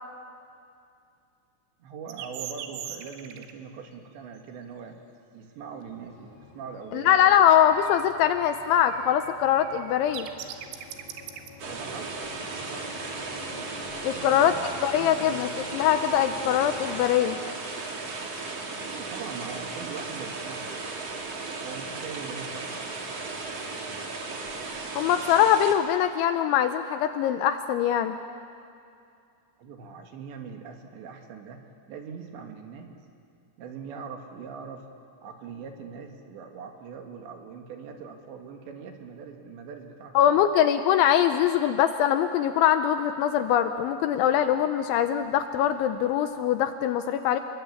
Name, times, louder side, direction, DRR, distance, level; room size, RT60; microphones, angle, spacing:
voice 1, 1.8-5.0 5.3-7.4 11.6-13.1 14.1-14.7 14.9-15.5 18.9-21.0 21.6-23.2 29.6-31.6 31.9-33.0 33.6-34.9 35.2-40.4, right 6 dB, 65° right, 3 dB, 3.7 m, -42 dB
sound 1, 2.1-3.5 7.8-8.0 8.3-11.5, right 10 dB, 85° right, 4.0 m, -40 dB
sound 2, 5.8-17.0, left 3 dB, 30° left, 3.3 m, -48 dB
voice 2, 6.9-10.3 14.0-14.6 14.8-17.4 24.9-28.2 40.1-47.4, left 10 dB, 80° left, 8 dB, 2.9 m, -22 dB
sound 3, 11.6-25.7, right 3 dB, 40° right, 2.7 m, -36 dB
29.0 x 22.0 x 8.6 m, 2.5 s
omnidirectional pair, 6.0 m